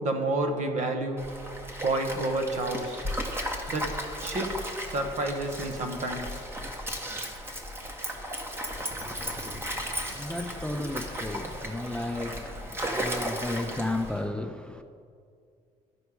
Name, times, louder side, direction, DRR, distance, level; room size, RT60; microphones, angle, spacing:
voice 1, 0.0-3.0 3.7-3.9 4.2-4.6 4.9-6.4, right 2 dB, 50° right, 1.1 m, -30 dB
Stream, 1.2-14.2, equal, 15° right, 1.0 m, -35 dB
voice 2, 10.1-14.8, left 1 dB, 5° left, 0.3 m, -33 dB
13.0 x 4.9 x 4.9 m
cardioid pair, 105°, 15 cm